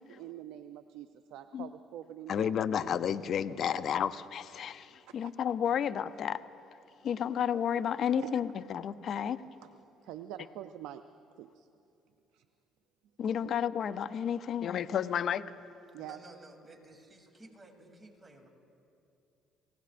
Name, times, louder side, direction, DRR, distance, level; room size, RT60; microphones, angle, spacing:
voice 1, 0.1-2.5 3.7-3.8 5.1-5.3 8.2-8.3 10.0-11.0 11.4-11.7 12.3-12.4 13.4-13.5 15.9-16.2, right 12 dB, 75° right, 10 dB, 0.4 m, -45 dB
voice 2, 2.3-6.4 7.0-9.4 13.2-15.4, left 8 dB, 60° left, 14 dB, 0.5 m, -31 dB
voice 3, 16.0-18.5, right 2 dB, 20° right, 1 dB, 2.9 m, -54 dB
30.0 x 16.0 x 2.5 m, 2.7 s
supercardioid pair, 70°, 0 cm